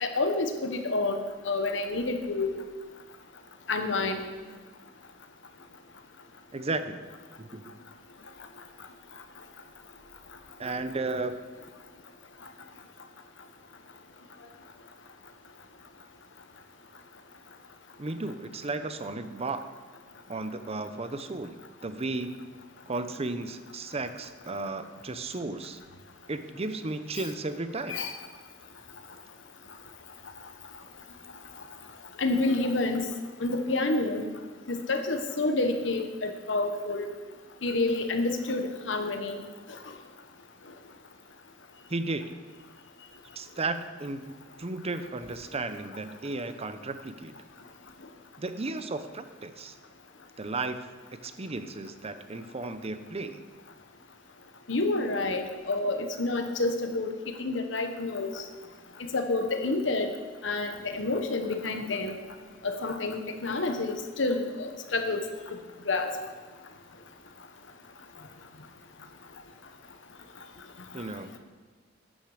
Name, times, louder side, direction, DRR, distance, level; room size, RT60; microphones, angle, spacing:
voice 1, 0.0-2.6 3.7-4.2 27.9-28.1 32.2-33.1 33.4-34.3 34.7-37.1 37.6-39.4 54.7-57.1 57.4-58.4 59.1-60.1 60.4-62.1 62.6-65.2 65.5-65.6 65.9-66.1, left 2 dB, 70° left, 6 dB, 1.2 m, -28 dB
voice 2, 6.5-7.1 7.4-7.8 10.6-11.4 18.0-19.7 20.3-21.6 21.8-22.5 22.9-25.8 26.3-28.0 41.9-42.4 43.4-47.3 48.4-49.7 50.4-50.8 51.2-53.4 70.9-71.4, right 3 dB, 35° right, 10 dB, 0.7 m, -34 dB
12.0 x 8.9 x 5.0 m, 1.5 s
head